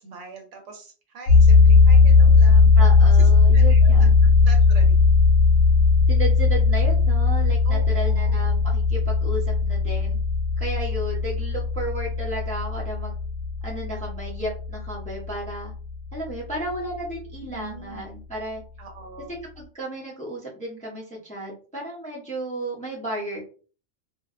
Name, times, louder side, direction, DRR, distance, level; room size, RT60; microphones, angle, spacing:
voice 1, 0.0-3.9 4.2-5.0 7.6-8.5 17.4-18.1 18.8-19.3, right 3 dB, 75° right, 2 dB, 1.0 m, -42 dB
sound 1, 1.3-16.1, left 4 dB, 75° left, 0.9 m, -17 dB
voice 2, 2.8-4.1 6.1-10.2 10.6-13.1 13.6-15.7 16.1-18.6 19.6-23.4, right 1 dB, 10° left, -4 dB, 0.6 m, -33 dB
2.6 x 2.3 x 2.2 m, 0.37 s
omnidirectional pair, 1.3 m